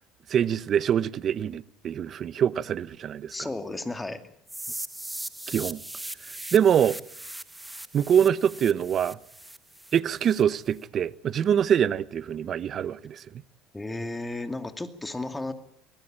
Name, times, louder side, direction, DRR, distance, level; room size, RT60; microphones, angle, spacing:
voice 1, 0.3-3.3 5.5-5.8 6.5-7.0 7.9-9.2 9.9-13.2, right 9 dB, 45° right, 0.9 m, -24 dB
voice 2, 3.3-4.2 13.7-15.5, left 2 dB, 10° left, 2.4 m, -33 dB
sound 1, 4.5-10.4, right 1 dB, 5° right, 1.5 m, -39 dB
24.5 x 18.5 x 8.8 m
supercardioid pair, 110°, 0 cm